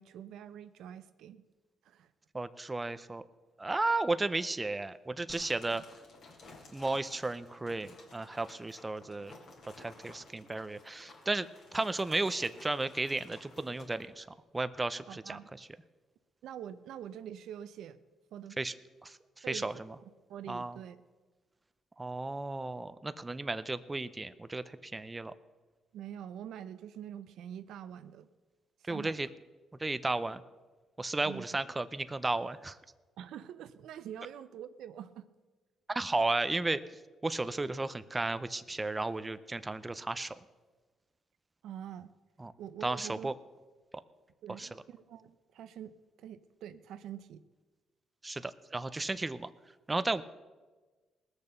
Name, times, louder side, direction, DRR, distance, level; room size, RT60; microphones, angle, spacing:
voice 1, 0.0-1.4 1.8-2.1 5.7-5.8 15.1-15.4 16.4-18.0 18.3-18.6 19.4-19.8 20.3-21.0 25.9-28.3 28.9-29.2 31.2-31.5 33.2-35.3 41.6-42.1 42.6-43.3 44.4-47.4, right 9 dB, 80° right, 12 dB, 0.6 m, -45 dB
voice 2, 2.3-3.2 3.6-5.8 6.7-9.3 9.8-14.3 14.5-15.4 18.6-18.7 19.0-19.7 20.5-20.8 22.0-25.3 28.9-29.3 29.8-30.4 31.0-32.8 35.9-36.8 37.2-40.3 42.4-42.5 42.8-43.3 44.6-44.7 48.2-49.5 49.9-50.2, right 2 dB, 20° right, 13 dB, 0.6 m, -34 dB
sound 1, 5.3-14.1, left 3 dB, 65° left, 3.0 m, -55 dB
19.0 x 6.9 x 6.6 m, 1.3 s
cardioid pair, 90°, 0 cm